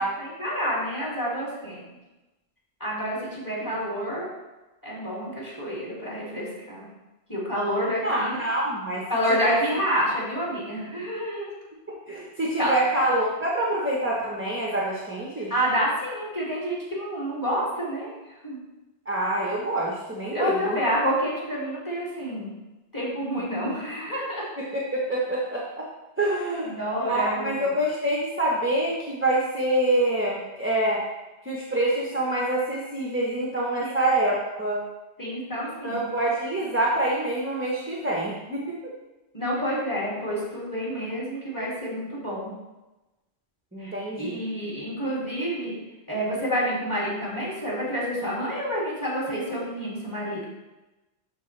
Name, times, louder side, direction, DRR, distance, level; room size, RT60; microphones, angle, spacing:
voice 1, 0.2-1.9 2.8-4.3 4.8-6.9 7.3-8.4 9.1-11.5 12.6-12.7 15.5-18.6 20.3-22.5 22.9-24.5 26.6-27.5 33.8-33.9 35.2-36.0 39.3-42.5 43.8-45.8 46.1-50.5, equal, 15° left, -6 dB, 2.6 m, -28 dB
voice 2, 8.0-9.1 9.4-9.6 11.9-15.5 19.1-20.8 24.6-25.9 26.2-26.7 27.1-31.0 31.4-34.8 35.8-38.7 43.7-44.4, right 1 dB, 10° right, -4 dB, 1.1 m, -26 dB
12.0 x 4.3 x 3.3 m, 1.1 s
omnidirectional pair, 1.2 m